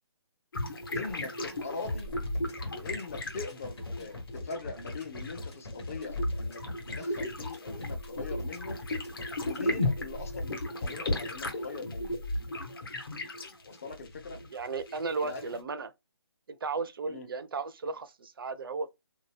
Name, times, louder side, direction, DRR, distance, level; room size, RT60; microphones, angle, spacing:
sound 1, 0.5-15.6, left 1 dB, 50° left, 1.0 m, -36 dB
voice 1, 0.7-2.1 2.7-8.8 9.4-12.2 13.6-14.4 15.2-15.4 17.1-17.3, left 3 dB, 30° left, 0.5 m, -41 dB
sound 2, 1.8-9.9, left 2 dB, 75° left, 1.2 m, -41 dB
voice 2, 14.5-15.9 16.5-18.9, right 4 dB, 50° right, 0.4 m, -35 dB
2.7 x 2.1 x 3.2 m
hypercardioid pair, 160°, 15 cm